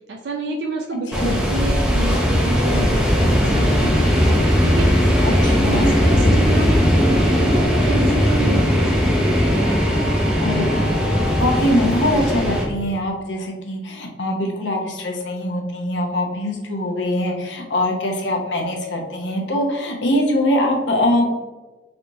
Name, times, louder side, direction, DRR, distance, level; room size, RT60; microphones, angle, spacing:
voice 1, 0.1-5.0 5.7-6.7 7.1-9.4, right 2 dB, 70° right, 2 dB, 0.3 m, -29 dB
sound 1, 1.1-12.6, equal, 5° right, 0.5 m, -18 dB
voice 2, 5.2-5.9 10.4-10.9 11.4-21.3, left 1 dB, 90° left, 1 dB, 0.7 m, -22 dB
3.2 x 2.9 x 2.6 m, 1.2 s
head